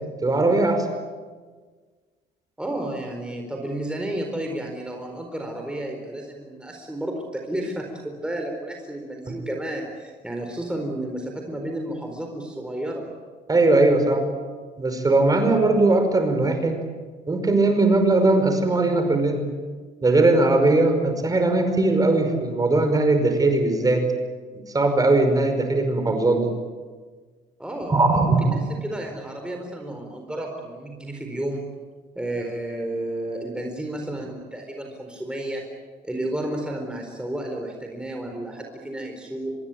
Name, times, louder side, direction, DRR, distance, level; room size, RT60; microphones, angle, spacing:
voice 1, 0.2-0.9 13.5-14.2 14.8-16.8 17.3-19.4 20.0-24.0 24.7-26.5 27.9-28.6, right 2 dB, 20° right, 7 dB, 5.2 m, -19 dB
voice 2, 2.6-13.1 27.6-31.6 32.2-35.6 36.0-39.6, right 1 dB, 5° right, 2 dB, 4.4 m, -32 dB
26.0 x 21.0 x 9.2 m, 1.5 s
cardioid pair, 110°, 17 cm